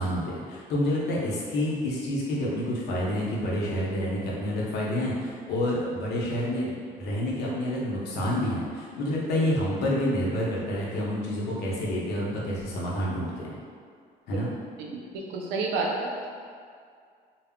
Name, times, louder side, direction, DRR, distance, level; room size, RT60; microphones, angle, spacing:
voice 1, 0.0-13.6 14.3-14.5, left 1 dB, 75° left, -5 dB, 0.7 m, -28 dB
voice 2, 15.3-16.3, right 3 dB, 90° right, -1 dB, 0.5 m, -29 dB
2.2 x 2.0 x 3.5 m, 2.2 s
cardioid pair, 110°, 17 cm